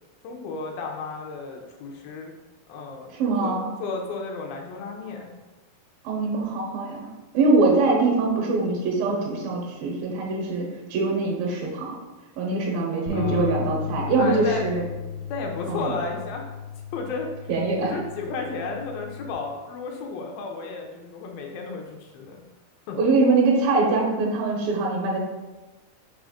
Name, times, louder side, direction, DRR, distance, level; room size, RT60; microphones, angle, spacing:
voice 1, 0.2-2.3 2.7-5.3 13.1-13.6 14.2-14.7 15.3-16.5 16.9-17.3 17.8-22.4 22.9-23.0, left 4 dB, 75° left, 1 dB, 2.3 m, -33 dB
voice 2, 3.2-3.7 6.0-7.1 7.3-12.0 12.4-14.8 15.7-15.9 17.5-18.0 23.0-25.2, right 3 dB, 75° right, -2 dB, 2.4 m, -23 dB
sound 1, 13.1-19.3, left 7 dB, 50° right, 1.1 m, -35 dB
6.3 x 3.1 x 4.9 m, 1.2 s
omnidirectional pair, 4.5 m